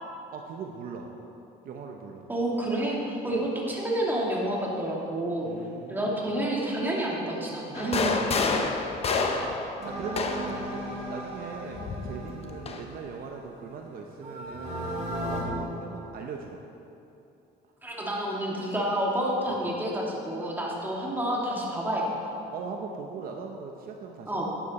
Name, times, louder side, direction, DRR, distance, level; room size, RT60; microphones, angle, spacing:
voice 1, 0.3-1.1 1.6-2.4 3.3-3.5 5.4-6.4 8.1-16.6 19.5-19.7 22.5-24.5, right 5 dB, 60° right, 2 dB, 0.9 m, -40 dB
voice 2, 2.3-5.5 5.9-8.2 17.8-22.4 24.3-24.5, right 1 dB, 10° right, -4 dB, 2.4 m, -29 dB
sound 1, 7.7-10.6 11.8-12.8, left 4 dB, 35° left, 0.9 m, -28 dB
sound 2, 9.8-13.6 14.2-15.4, equal, 40° right, 2.8 m, -36 dB
11.5 x 9.2 x 4.3 m, 2.7 s
cardioid pair, 110°, 17 cm